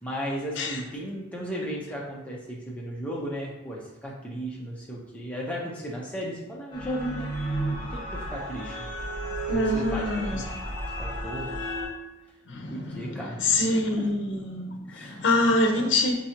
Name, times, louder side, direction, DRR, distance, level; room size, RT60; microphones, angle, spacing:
voice 1, 0.0-8.8 9.5-10.6 11.0-11.6 12.7-14.1 14.9-15.3, equal, 5° left, -4 dB, 0.6 m, -35 dB
sound 1, 6.7-11.9, right 1 dB, 25° left, 1.4 m, -32 dB
voice 2, 9.5-10.5 12.5-16.1, left 2 dB, 70° left, 3 dB, 0.6 m, -25 dB
4.6 x 2.8 x 2.8 m, 0.97 s
head